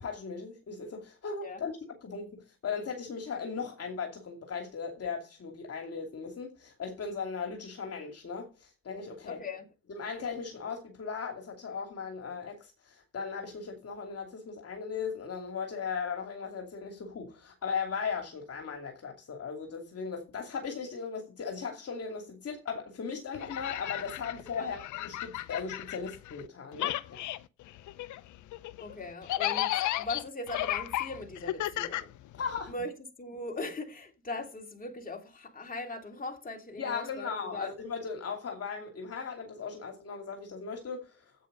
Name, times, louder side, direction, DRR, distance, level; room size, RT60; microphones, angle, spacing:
voice 1, 0.0-1.7 2.0-9.4 9.9-27.2 32.4-32.7 36.8-41.2, left 5 dB, 50° left, 2.7 m, -37 dB
voice 2, 9.3-9.7 24.6-24.7 28.8-32.1 32.6-37.7, left 2 dB, 30° left, 3.1 m, -40 dB
sound 1, 23.3-26.5 26.7-32.7, left 14 dB, 75° left, 0.7 m, -34 dB
10.0 x 8.6 x 5.5 m
cardioid pair, 90°, 30 cm